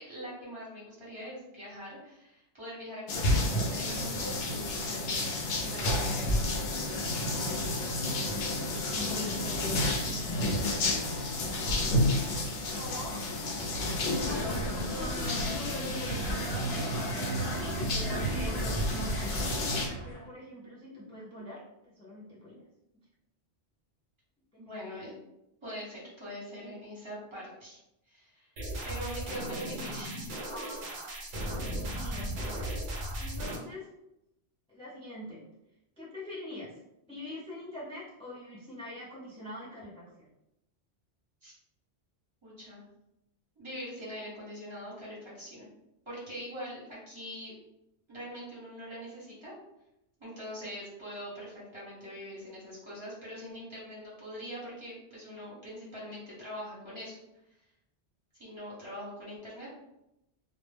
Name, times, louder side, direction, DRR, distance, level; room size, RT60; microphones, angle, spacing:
voice 1, 0.0-5.1 5.6-6.4 11.5-12.2 12.9-13.0 24.6-25.2 25.6-27.8 28.1-28.5 28.8-30.3 41.4-41.5 42.4-42.8 43.6-45.7 46.1-47.5 48.1-49.5 50.2-57.2 58.3-59.7, equal, 25° right, -8 dB, 1.1 m, -43 dB
sound 1, 3.1-19.9, left 1 dB, 70° left, 0.8 m, -31 dB
voice 2, 7.4-10.7 12.7-13.3 14.1-16.8 17.3-22.6 24.5-24.7 28.7-28.8 30.5-30.9 31.4-32.7 33.2-33.9 34.7-35.4 36.0-36.7 37.1-40.3, left 1 dB, 10° left, -8 dB, 0.3 m, -43 dB
sound 2, 14.2-20.3, right 1 dB, 50° left, 1.2 m, -34 dB
sound 3, 28.6-33.6, right 1 dB, 55° right, 0.7 m, -36 dB
2.2 x 2.0 x 3.2 m, 0.87 s
omnidirectional pair, 1.1 m